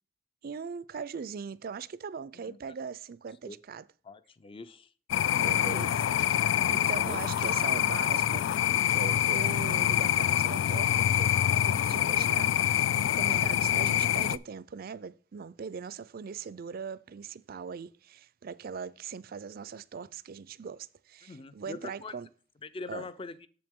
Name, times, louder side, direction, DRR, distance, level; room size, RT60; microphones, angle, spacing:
voice 1, 0.4-3.9 5.4-6.0 6.7-11.3 11.6-22.3 22.9-23.1, right 6 dB, 50° right, 0.4 m, -40 dB
voice 2, 4.0-4.9 6.8-7.2 21.2-22.1 22.6-23.5, left 3 dB, 30° left, 0.5 m, -43 dB
sound 1, 5.1-14.4, left 11 dB, 85° left, 0.3 m, -26 dB
7.7 x 7.2 x 3.6 m
head